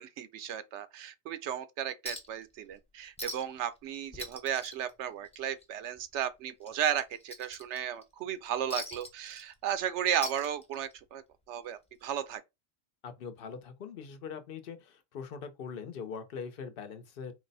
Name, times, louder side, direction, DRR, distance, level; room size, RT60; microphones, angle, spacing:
voice 1, 0.0-11.2 11.5-12.4, right 9 dB, 80° right, 0.9 m, -34 dB
Chink clink, 2.1-2.4 2.7-2.8 3.2-3.6 3.9-5.6 6.0-6.2 6.6-8.0 8.7-9.8 10.1-11.0 12.1-12.2, left 1 dB, 5° left, 0.7 m, -42 dB
voice 2, 13.0-17.3, left 6 dB, 60° left, 0.8 m, -42 dB
4.6 x 2.1 x 4.0 m
omnidirectional pair, 1.2 m